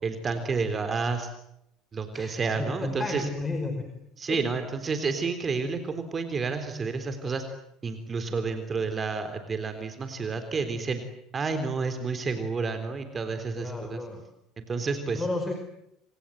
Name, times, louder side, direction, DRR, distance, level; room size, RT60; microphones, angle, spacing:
voice 1, 0.0-1.3 1.9-3.3 4.2-7.4 7.8-11.0 11.3-14.0 14.6-15.3, right 4 dB, 30° right, 8 dB, 3.7 m, -30 dB
voice 2, 2.1-4.0 4.3-4.4 13.6-14.2 15.1-15.5, left 3 dB, 20° left, 5 dB, 5.2 m, -32 dB
29.0 x 26.0 x 7.8 m, 0.79 s
figure-of-eight pair, 65°, 0 cm